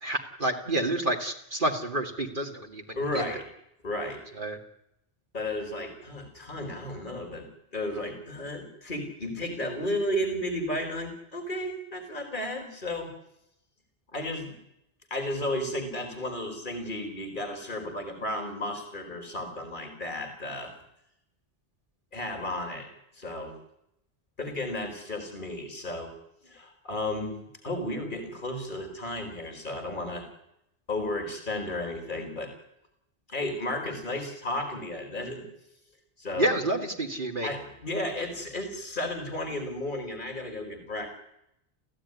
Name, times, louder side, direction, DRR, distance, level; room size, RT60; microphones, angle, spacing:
voice 1, 0.0-3.2 4.4-4.6 36.4-37.5, right 1 dB, 50° right, 1 dB, 2.6 m, -29 dB
voice 2, 3.0-3.4 3.8-4.2 5.3-13.1 14.1-14.6 15.1-20.7 22.1-22.9 23.1-23.6 24.4-26.1 26.4-27.4 27.6-30.3 30.9-32.5 33.3-35.5 36.2-36.5 37.4-41.1, left 1 dB, 50° left, 3 dB, 4.6 m, -33 dB
29.5 x 16.0 x 9.8 m, 0.82 s
omnidirectional pair, 1.1 m